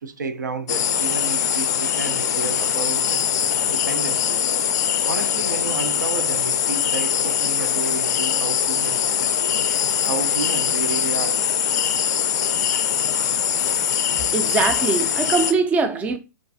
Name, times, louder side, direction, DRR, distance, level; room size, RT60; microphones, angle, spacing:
voice 1, 0.0-3.3 3.7-4.5 5.1-9.1 9.8-11.4, right 5 dB, 80° right, 0.4 m, -31 dB
sound 1, 0.7-15.5, left 9 dB, 60° left, 0.4 m, -22 dB
voice 2, 14.3-16.2, right 4 dB, 15° right, 0.4 m, -22 dB
2.4 x 2.2 x 2.6 m
hypercardioid pair, 120°, 10 cm